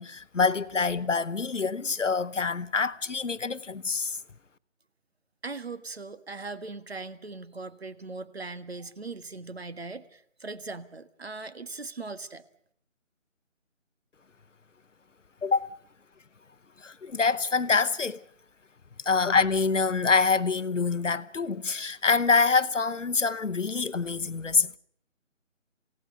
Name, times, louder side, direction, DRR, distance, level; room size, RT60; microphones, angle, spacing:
voice 1, 0.0-4.2 15.4-15.7 16.8-18.2 19.0-24.8, left 4 dB, 70° left, 1.1 m, -26 dB
voice 2, 5.4-12.5, right 3 dB, 50° right, 1.7 m, -39 dB
28.0 x 17.0 x 6.8 m
figure-of-eight pair, 170°, 39 cm